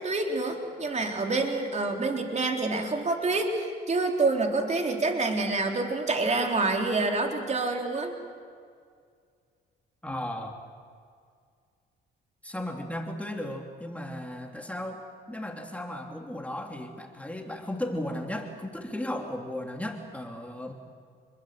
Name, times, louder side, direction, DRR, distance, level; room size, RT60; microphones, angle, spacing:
voice 1, 0.0-8.1, right 3 dB, 35° right, 3 dB, 3.8 m, -27 dB
voice 2, 10.0-10.6 12.4-20.7, left 1 dB, 5° left, 2 dB, 3.0 m, -35 dB
28.5 x 22.0 x 7.8 m, 2.1 s
cardioid pair, 90°, 20 cm